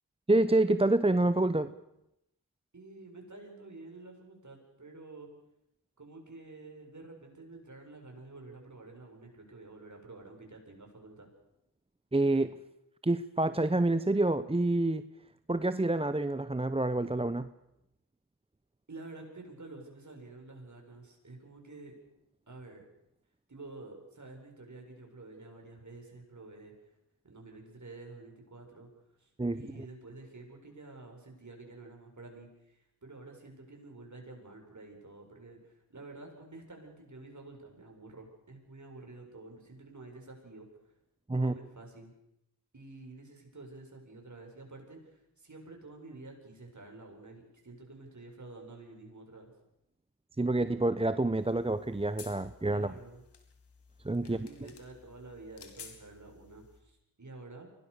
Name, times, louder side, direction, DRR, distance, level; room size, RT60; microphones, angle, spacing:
voice 1, 0.3-1.7 12.1-12.5 13.0-15.0 15.5-17.5 29.4-29.6 41.3-41.5 50.4-52.9 54.0-54.5, right 2 dB, 15° right, 13 dB, 0.9 m, -27 dB
voice 2, 2.7-5.3 6.0-11.3 18.9-21.9 22.5-22.8 23.5-26.7 27.2-28.9 29.2-40.7 41.3-42.1 42.7-49.5 52.7-53.2 54.2-57.7, right 2 dB, 45° right, 2 dB, 7.6 m, -49 dB
sound 1, 51.4-56.8, left 6 dB, 90° left, 2.8 m, -54 dB
24.0 x 19.0 x 6.9 m, 0.84 s
cardioid pair, 40°, 40 cm